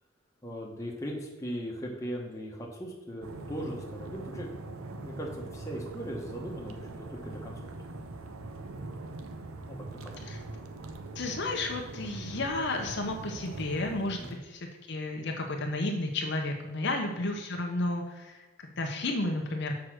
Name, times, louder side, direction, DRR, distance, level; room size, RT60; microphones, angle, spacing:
voice 1, 0.4-7.6 9.7-10.2 11.1-11.2 14.2-14.4, equal, 15° left, -1 dB, 1.1 m, -39 dB
sound 1, 3.2-14.4, right 2 dB, 85° right, 0.7 m, -42 dB
voice 2, 11.2-19.7, left 2 dB, 55° left, 2 dB, 0.8 m, -32 dB
6.4 x 4.7 x 6.2 m, 1.2 s
head